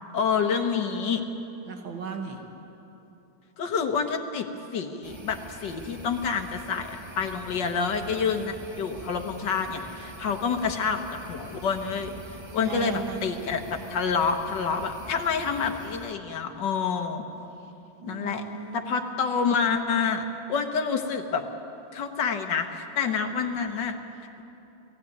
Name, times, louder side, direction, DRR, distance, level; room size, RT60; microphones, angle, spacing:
voice 1, 0.1-1.2 3.6-4.5 4.7-12.1 12.5-17.3 18.0-18.4 18.7-21.5 21.9-24.0, left 6 dB, 70° left, 6 dB, 1.8 m, -28 dB
voice 2, 1.7-2.4 12.6-13.2 18.0-19.1, right 6 dB, 85° right, 4 dB, 2.2 m, -36 dB
sound 1, 5.0-16.1, right 2 dB, 25° right, 0.6 m, -44 dB
17.5 x 16.0 x 9.4 m, 2.9 s
omnidirectional pair, 2.1 m